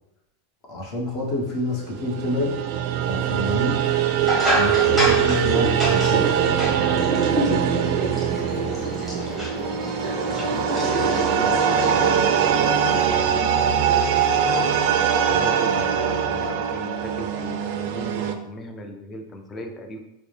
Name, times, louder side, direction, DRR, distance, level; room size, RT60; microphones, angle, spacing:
voice 1, 0.7-2.5 3.1-3.8 4.5-6.3, left 1 dB, 40° left, -1 dB, 1.0 m, -27 dB
sound 1, 1.9-18.4, right 8 dB, 55° right, 0.3 m, -22 dB
sound 2, 4.2-12.5, right 1 dB, 5° left, 1.1 m, -27 dB
Liquid, 8.1-13.1, left 3 dB, 80° left, 0.7 m, -40 dB
voice 2, 10.3-14.8 15.3-20.0, left 1 dB, 20° left, 4 dB, 0.5 m, -37 dB
4.7 x 2.1 x 3.3 m, 0.86 s
supercardioid pair, 150°, 0 cm